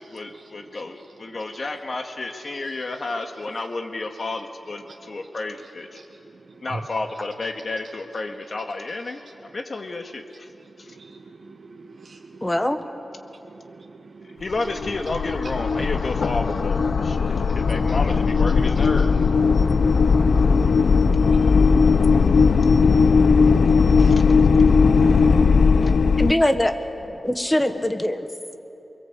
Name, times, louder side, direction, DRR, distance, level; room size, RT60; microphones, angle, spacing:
voice 1, 0.0-6.0 6.6-9.2 9.5-10.5 10.8-11.0 14.2-19.1 24.1-24.5 25.8-25.9, left 2 dB, 45° left, 4 dB, 1.9 m, -31 dB
voice 2, 10.9-12.5 13.4-14.4 17.2-17.3 19.5-21.4 24.0-24.2, right 3 dB, 55° right, 2 dB, 1.2 m, -43 dB
voice 3, 12.4-12.8 26.2-28.3, left 1 dB, 15° left, 8 dB, 1.3 m, -22 dB
sound 1, 14.4-26.3, left 5 dB, 70° left, 0.7 m, -17 dB
29.0 x 22.0 x 8.1 m, 2.9 s
wide cardioid pair, 130°, 0 cm